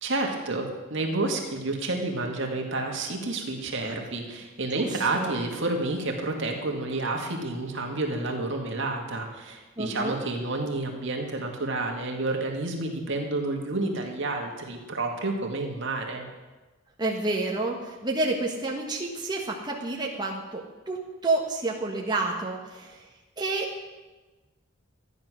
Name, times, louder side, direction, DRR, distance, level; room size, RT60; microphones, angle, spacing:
voice 1, 0.0-16.3, right 2 dB, 60° right, 2 dB, 2.1 m, -30 dB
voice 2, 4.7-5.4 9.8-10.2 17.0-23.1 23.4-23.9, right 2 dB, 20° right, -2 dB, 1.3 m, -29 dB
13.5 x 9.9 x 6.3 m, 1.2 s
head